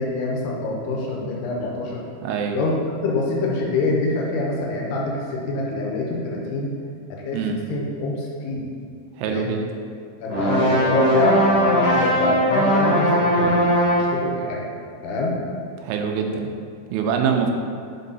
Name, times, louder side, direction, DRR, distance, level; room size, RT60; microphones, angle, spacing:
voice 1, 0.0-2.0 2.5-2.7 3.0-6.7 7.1-7.4 7.7-8.7 9.3-9.5 10.2-13.7 13.9-14.7 15.0-15.4, left 2 dB, 85° left, -1 dB, 2.9 m, -25 dB
voice 2, 2.2-2.6 7.3-7.6 9.2-9.7 15.8-16.5 16.9-17.5, right 6 dB, 85° right, 3 dB, 2.5 m, -24 dB
sound 1, 10.3-14.3, equal, 50° left, 2.3 m, -19 dB
5.5 x 5.3 x 4.0 m, 2.3 s
omnidirectional pair, 4.6 m